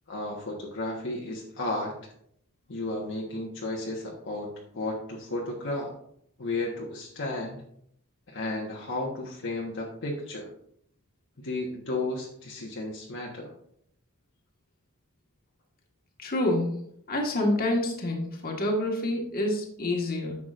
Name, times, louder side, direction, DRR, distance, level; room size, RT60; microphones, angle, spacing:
voice 1, 0.1-2.1 2.7-5.9 6.4-7.6 8.3-10.5 11.4-13.5, left 2 dB, 60° left, -2 dB, 1.3 m, -33 dB
voice 2, 16.2-16.7 17.1-20.4, left 1 dB, 45° left, 1 dB, 1.6 m, -27 dB
11.0 x 7.1 x 2.5 m, 0.69 s
head